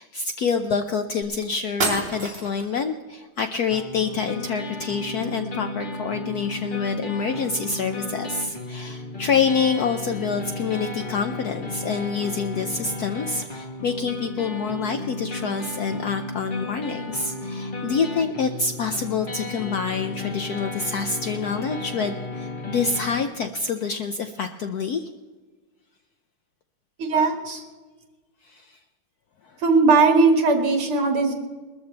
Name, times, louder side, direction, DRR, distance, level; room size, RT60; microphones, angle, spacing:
voice 1, 0.0-25.1 28.4-28.8, left 5 dB, 70° left, 7 dB, 0.9 m, -27 dB
sound 1, 1.2-1.3 1.8-2.7, right 3 dB, 60° right, 3.5 m, -27 dB
sound 2, 3.7-23.3, left 2 dB, 30° left, 1.1 m, -34 dB
voice 2, 27.0-27.6 29.6-31.3, right 4 dB, 80° right, 4 dB, 2.6 m, -19 dB
21.0 x 13.5 x 3.3 m, 1.3 s
omnidirectional pair, 2.3 m